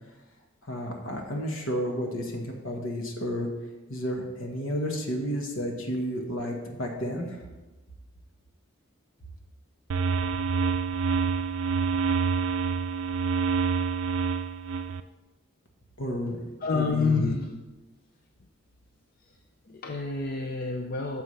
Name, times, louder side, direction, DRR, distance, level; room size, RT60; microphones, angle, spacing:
voice 1, 0.6-3.5 3.9-7.4 16.0-16.5 16.7-17.4, equal, 70° left, 2 dB, 1.5 m, -31 dB
sound 1, 9.9-15.0, right 5 dB, 70° right, 0.4 m, -27 dB
voice 2, 16.6-17.5 19.7-21.2, left 4 dB, 45° left, 3 dB, 0.5 m, -28 dB
9.5 x 6.9 x 3.3 m, 1.1 s
head